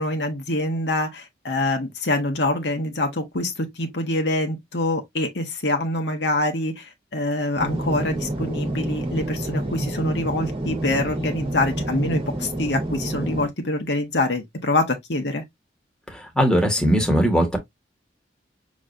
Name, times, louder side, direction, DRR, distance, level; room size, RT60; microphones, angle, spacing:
voice 1, 0.0-15.4, left 2 dB, 65° left, 1.3 m, -25 dB
sound 1, 7.6-13.5, right 1 dB, 30° right, 1.3 m, -28 dB
voice 2, 16.1-17.6, equal, 5° left, 1.5 m, -20 dB
6.2 x 3.2 x 2.6 m
head